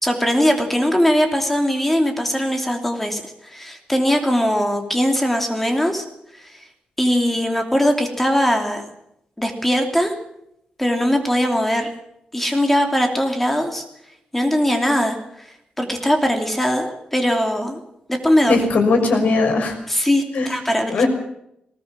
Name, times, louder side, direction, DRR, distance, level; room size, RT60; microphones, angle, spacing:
voice 1, 0.0-6.0 6.4-6.6 7.0-8.8 9.4-10.1 10.8-11.9 12.3-13.8 14.3-15.5 15.8-17.8 18.1-18.7 19.9-21.0, equal, 5° left, 4 dB, 2.9 m, -20 dB
voice 2, 18.5-19.7 20.3-20.5 20.9-21.1, left 3 dB, 75° left, 4 dB, 5.9 m, -18 dB
20.0 x 19.0 x 7.5 m, 0.78 s
wide cardioid pair, 160°, 3 cm